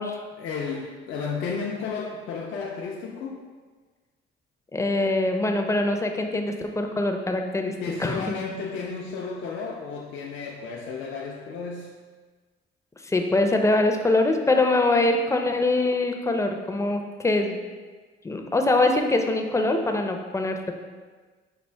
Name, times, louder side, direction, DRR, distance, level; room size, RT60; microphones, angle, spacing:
voice 1, 0.4-3.4 7.8-11.9, left 5 dB, 80° left, -2 dB, 0.5 m, -33 dB
voice 2, 4.7-7.7 8.0-8.4 13.0-17.6 18.2-20.7, left 2 dB, 15° left, 4 dB, 0.4 m, -23 dB
5.6 x 2.4 x 3.3 m, 1.4 s
cardioid pair, 90°, 20 cm